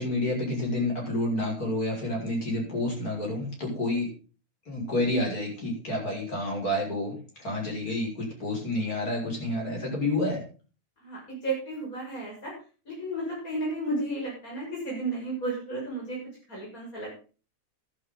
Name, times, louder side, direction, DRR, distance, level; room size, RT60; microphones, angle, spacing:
voice 1, 0.0-4.1 4.7-10.4, left 1 dB, 90° left, -2 dB, 6.6 m, -29 dB
voice 2, 11.0-12.5 12.9-16.2 16.5-17.2, right 2 dB, 70° left, -4 dB, 7.3 m, -33 dB
13.5 x 13.0 x 4.0 m, 0.36 s
omnidirectional pair, 1.6 m